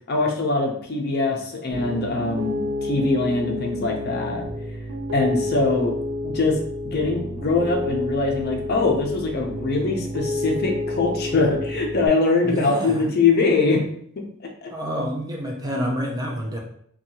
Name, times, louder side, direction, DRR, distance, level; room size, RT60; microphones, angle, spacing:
voice 1, 0.1-4.4 5.1-5.9 6.2-6.6 6.8-13.8 14.2-14.7, left 3 dB, 50° left, 2 dB, 0.5 m, -22 dB
Piano, 1.7-12.1, left 2 dB, 85° right, 0.5 m, -29 dB
voice 2, 12.4-13.0 14.7-16.6, equal, 20° right, 0 dB, 0.4 m, -28 dB
2.6 x 2.3 x 2.7 m, 0.65 s
head